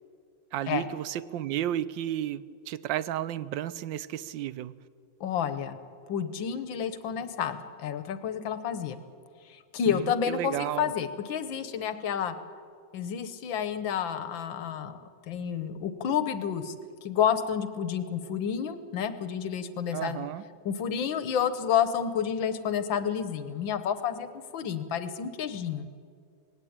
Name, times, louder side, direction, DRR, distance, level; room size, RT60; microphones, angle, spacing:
voice 1, 0.5-4.7 9.8-10.9 19.9-20.4, right 12 dB, 80° right, 17 dB, 1.4 m, -33 dB
voice 2, 5.2-5.8 6.1-9.0 9.5-12.4 12.9-16.7 17.0-20.3 20.7-25.9, left 8 dB, 85° left, 12 dB, 1.9 m, -30 dB
19.5 x 17.0 x 8.7 m, 2.2 s
omnidirectional pair, 2.0 m